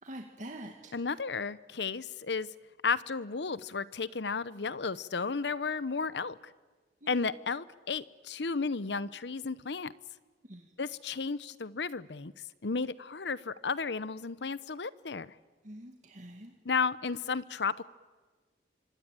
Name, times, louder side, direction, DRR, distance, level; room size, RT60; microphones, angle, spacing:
voice 1, 0.0-0.9 7.0-7.1 10.4-10.7 15.6-16.5, right 1 dB, 45° right, 2 dB, 2.1 m, -45 dB
voice 2, 0.9-2.5 2.8-6.5 7.1-9.9 10.8-12.3 12.6-15.3 16.6-17.8, left 4 dB, 70° left, 17 dB, 0.8 m, -33 dB
26.0 x 23.5 x 9.1 m, 1.4 s
head